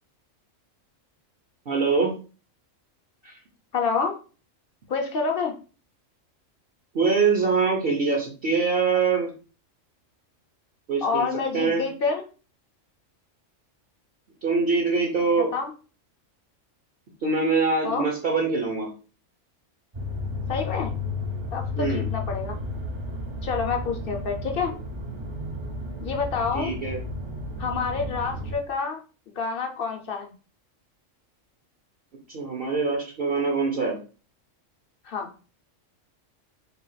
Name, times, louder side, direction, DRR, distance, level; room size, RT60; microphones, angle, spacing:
voice 1, 1.7-2.1 3.2-3.3 6.9-9.3 10.9-11.2 11.5-11.8 14.4-15.5 17.2-18.9 21.8-22.1 26.5-27.0 32.3-34.0, right 4 dB, 50° right, 0 dB, 1.0 m, -23 dB
voice 2, 3.7-4.2 4.9-5.5 11.0-12.2 15.5-15.7 17.8-18.1 20.5-20.9 21.5-22.6 23.4-24.7 26.0-26.7 27.6-29.0 29.3-30.3 35.0-35.3, left 5 dB, 50° left, 4 dB, 0.8 m, -28 dB
sound 1, 19.9-28.6, left 2 dB, 30° right, 0.5 m, -32 dB
4.1 x 2.4 x 3.9 m, 0.36 s
omnidirectional pair, 1.3 m